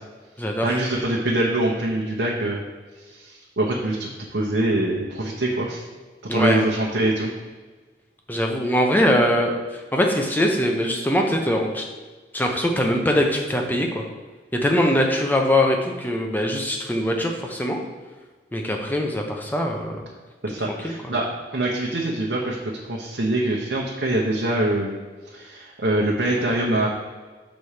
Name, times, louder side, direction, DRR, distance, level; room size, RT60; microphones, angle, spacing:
voice 1, 0.6-2.6 3.1-5.8 6.3-7.3 20.4-22.6 22.9-25.0 25.3-26.9, right 1 dB, 80° right, -3 dB, 0.9 m, -24 dB
voice 2, 6.3-6.6 8.3-11.8 12.3-14.0 14.6-17.8 18.5-20.1 20.8-20.9, left 1 dB, 10° left, 2 dB, 0.7 m, -22 dB
6.2 x 4.2 x 4.9 m, 1.3 s
head